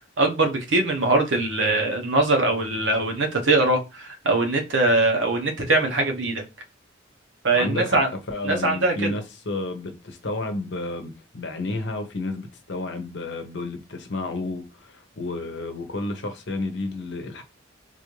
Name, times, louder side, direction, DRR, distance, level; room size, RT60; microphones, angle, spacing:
voice 1, 0.2-6.4 7.4-8.1 8.4-9.1, right 2 dB, 70° right, 0.9 m, -22 dB
voice 2, 7.5-17.4, left 2 dB, 65° left, 0.8 m, -31 dB
3.9 x 2.5 x 3.1 m
head